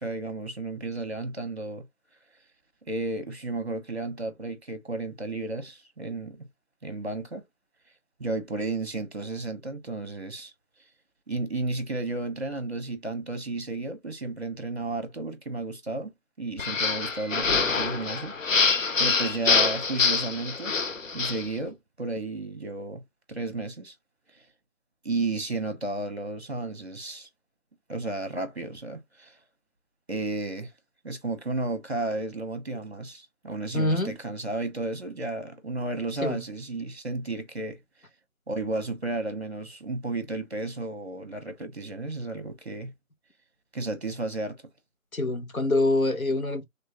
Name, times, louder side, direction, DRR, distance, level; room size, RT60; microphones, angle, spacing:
voice 1, 0.0-1.8 2.8-6.4 6.8-7.4 8.2-10.5 11.3-16.1 16.4-18.3 19.0-20.7 21.1-23.0 23.3-23.9 25.0-27.3 27.9-29.3 30.1-30.7 31.0-37.8 38.5-42.9 43.7-44.6, right 2 dB, 50° right, 1.2 m, -33 dB
sound 1, 16.6-21.5, left 4 dB, 70° left, 0.7 m, -25 dB
voice 2, 33.7-34.1 36.2-36.4 45.1-46.6, left 2 dB, 85° left, 1.5 m, -25 dB
3.6 x 3.4 x 2.9 m
figure-of-eight pair, 180°, 41 cm